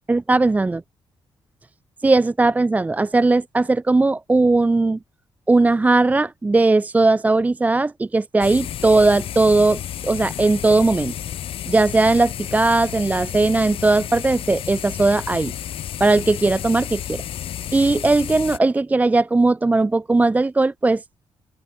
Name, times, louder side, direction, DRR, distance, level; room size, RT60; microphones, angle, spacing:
voice 1, 0.1-0.8 2.0-5.0 5.5-11.1 11.7-15.5 16.0-17.2 17.7-21.0, right 3 dB, 15° right, 0.5 m, -18 dB
sound 1, 8.4-18.6, left 11 dB, 80° left, 1.3 m, -32 dB
cardioid pair, 130°, 9 cm